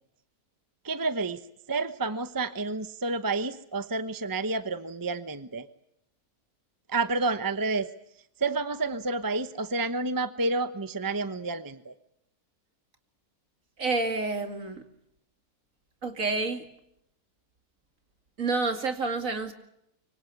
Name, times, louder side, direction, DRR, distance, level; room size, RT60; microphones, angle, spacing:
voice 1, 0.8-5.7 6.9-7.9 8.4-11.9, right 3 dB, 15° right, 11 dB, 0.9 m, -30 dB
voice 2, 13.8-14.8 16.0-16.6 18.4-19.5, right 3 dB, 60° right, 7 dB, 2.7 m, -29 dB
25.0 x 24.5 x 8.2 m, 0.76 s
omnidirectional pair, 1.6 m